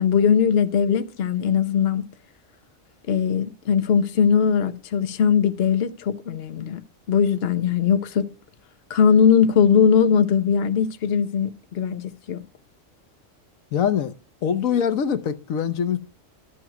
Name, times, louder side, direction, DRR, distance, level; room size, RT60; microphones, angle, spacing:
voice 1, 0.0-2.0 3.1-6.8 7.1-8.3 8.9-12.4, left 7 dB, 55° left, 1.1 m, -20 dB
voice 2, 13.7-14.2 14.4-16.0, left 8 dB, 90° left, 1.3 m, -23 dB
12.5 x 7.1 x 5.8 m
omnidirectional pair, 1.4 m